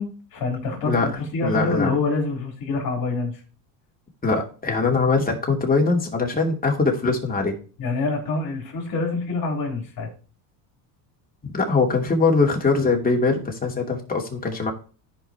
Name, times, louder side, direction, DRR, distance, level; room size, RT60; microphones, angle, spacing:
voice 1, 0.0-3.3 7.8-10.1, left 3 dB, 45° left, 1 dB, 3.7 m, -26 dB
voice 2, 1.4-1.9 4.2-7.6 11.4-14.7, left 4 dB, 15° left, 0 dB, 2.8 m, -22 dB
15.5 x 5.4 x 3.0 m, 0.37 s
supercardioid pair, 100°, 50 cm